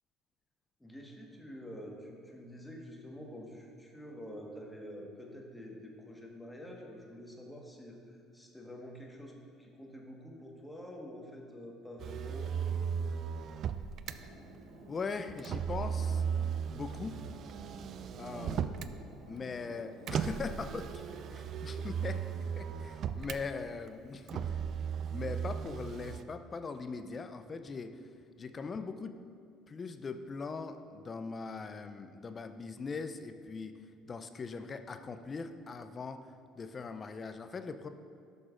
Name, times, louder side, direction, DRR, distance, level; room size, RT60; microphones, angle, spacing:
voice 1, 0.8-12.7 18.3-18.7 21.1-21.9, equal, 10° left, 0 dB, 1.5 m, -48 dB
Motor vehicle (road), 12.0-14.2 15.4-19.0 20.1-23.4 24.3-26.2, right 7 dB, 55° right, 0.3 m, -36 dB
sound 1, 14.0-20.7, right 1 dB, 75° right, 1.1 m, -54 dB
voice 2, 14.9-16.3 16.7-17.2 18.2-18.7 19.3-20.9 21.6-22.2 22.6-24.6 25.1-27.9 28.4-29.2 29.7-33.7 34.1-36.2 36.6-37.9, left 4 dB, 35° left, 9 dB, 0.5 m, -40 dB
12.0 x 6.1 x 2.5 m, 2.3 s
hypercardioid pair, 65°, 0 cm